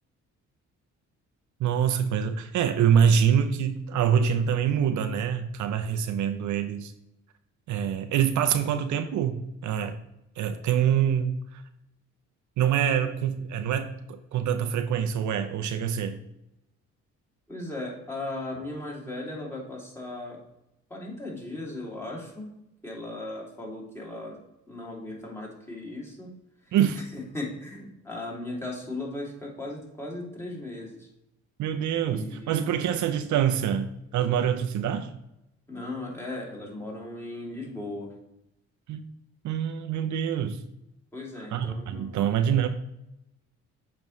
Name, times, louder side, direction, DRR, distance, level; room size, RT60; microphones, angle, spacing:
voice 1, 1.6-6.9 7.7-10.0 10.4-11.6 12.6-16.2 26.7-27.0 31.6-35.1 38.9-39.1 39.4-40.6 41.4-42.7, right 8 dB, 75° right, 8 dB, 0.6 m, -25 dB
voice 2, 17.5-20.4 20.9-22.5 22.8-24.4 24.7-26.3 27.1-31.1 32.0-32.6 35.7-38.1 41.1-42.2, left 2 dB, 10° left, -4 dB, 2.6 m, -37 dB
7.1 x 5.2 x 3.1 m, 0.85 s
cardioid pair, 90°, 30 cm